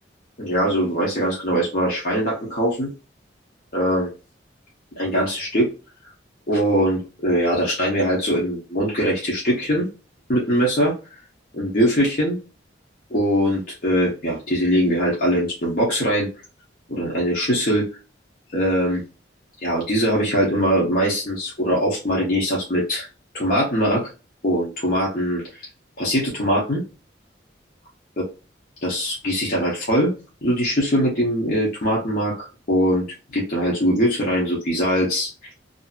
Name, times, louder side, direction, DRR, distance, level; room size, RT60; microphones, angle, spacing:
voice 1, 0.4-2.9 3.7-4.1 5.0-5.7 6.5-9.9 10.3-11.0 11.5-12.4 13.1-16.3 16.9-18.0 18.5-19.0 19.6-23.1 23.3-24.1 24.4-25.7 26.0-26.8 28.8-30.1 30.4-35.5, equal, 50° left, -4 dB, 0.8 m, -22 dB
2.7 x 2.6 x 2.4 m, 0.32 s
head